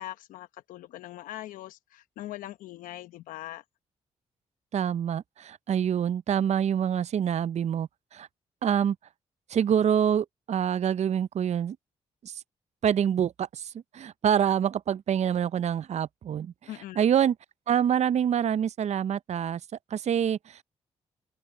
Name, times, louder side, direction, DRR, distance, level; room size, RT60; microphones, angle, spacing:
voice 1, 0.0-3.6 16.7-17.0, left 14 dB, 80° left, 0.9 m, -41 dB
voice 2, 4.7-8.3 8.6-9.0 9.5-11.8 12.2-12.4 12.8-16.5 17.0-17.3 17.7-19.6 19.9-20.6, right 9 dB, 55° right, 0.6 m, -26 dB
open air
hypercardioid pair, 45°, 14 cm